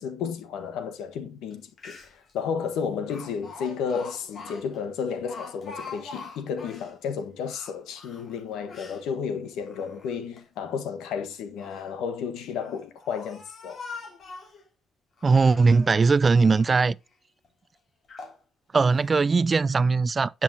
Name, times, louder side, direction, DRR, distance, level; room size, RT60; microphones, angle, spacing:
voice 1, 0.0-13.8, left 6 dB, 90° left, 1.5 m, -32 dB
Speech, 1.5-1.6 1.8-2.3 3.1-6.9 7.4-9.0 9.6-10.4 11.3-11.9 12.6-14.6 15.2-16.0 16.4-16.9 17.4-17.5 18.1-18.4 18.9-19.1, left 4 dB, 50° left, 2.7 m, -43 dB
voice 2, 15.2-17.0 18.7-20.4, right 4 dB, 35° right, 0.3 m, -20 dB
9.5 x 5.8 x 2.9 m
cardioid pair, 90°, 0 cm